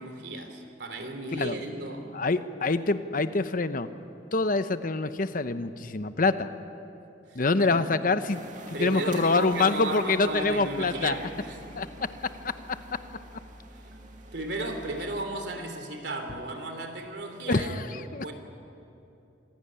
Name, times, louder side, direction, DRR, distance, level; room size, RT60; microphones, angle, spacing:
voice 1, 0.0-2.1 7.3-7.8 8.7-11.6 14.3-18.3, right 2 dB, 70° right, 5 dB, 3.3 m, -34 dB
voice 2, 2.1-3.9 4.3-6.5 7.3-8.4 8.7-11.2 11.8-11.9 17.5-18.3, left 3 dB, 50° left, 11 dB, 0.9 m, -26 dB
sound 1, 8.3-15.2, right 2 dB, 45° right, 2.4 m, -46 dB
26.5 x 16.0 x 10.0 m, 2.9 s
head